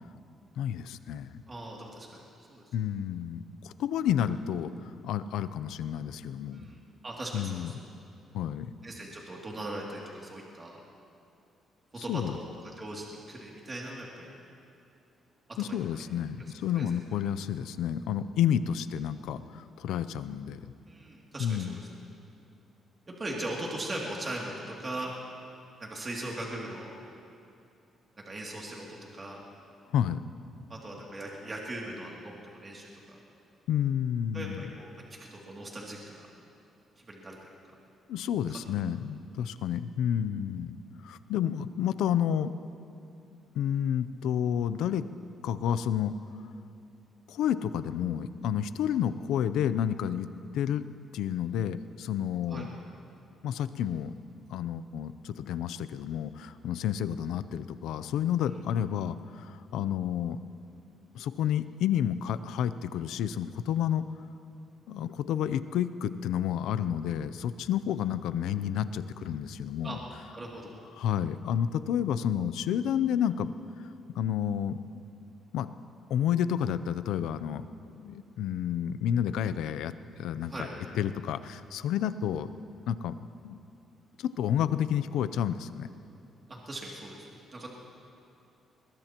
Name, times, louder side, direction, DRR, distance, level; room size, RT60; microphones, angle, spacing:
voice 1, 0.6-1.4 2.7-6.7 7.3-7.7 8.3-8.7 12.0-12.4 15.6-20.6 21.4-21.8 29.9-30.2 33.7-34.6 38.1-40.8 41.0-42.5 43.5-45.1 45.4-46.2 47.3-50.3 50.5-50.9 51.1-52.7 53.4-54.1 54.5-60.4 61.1-64.1 64.9-70.0 71.0-73.5 74.2-74.8 75.5-75.7 76.1-77.6 78.0-80.7 80.9-82.5 82.9-83.2 83.4-83.6 84.2-85.9, left 9 dB, 85° left, 13 dB, 0.5 m, -30 dB
voice 2, 1.5-2.2 2.5-2.6 6.5-6.8 7.0-7.7 8.8-10.8 12.0-14.3 15.6-16.0 16.4-16.8 20.9-21.8 23.1-25.1 25.8-27.0 28.2-29.4 30.7-32.9 34.3-34.9 35.2-36.3 37.0-37.4 52.5-52.7 69.8-70.0 70.3-70.7 80.5-80.7 86.5-87.7, right 1 dB, 30° right, -3 dB, 2.6 m, -39 dB
21.5 x 21.5 x 3.0 m, 2.6 s
cardioid pair, 90°, 0 cm